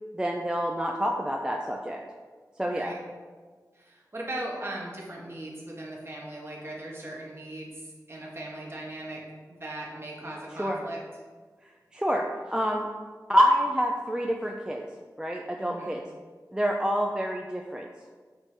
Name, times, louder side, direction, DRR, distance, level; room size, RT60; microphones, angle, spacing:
voice 1, 0.1-2.0 2.6-2.9 10.6-10.8 11.9-12.2 12.5-12.9 13.3-14.9 15.2-16.0 16.5-17.9, equal, 10° right, 1 dB, 0.3 m, -27 dB
voice 2, 2.7-3.0 3.7-9.2 9.5-11.0 15.6-15.9, right 1 dB, 35° right, -3 dB, 1.1 m, -38 dB
5.2 x 2.7 x 3.2 m, 1.5 s
cardioid pair, 40°, 7 cm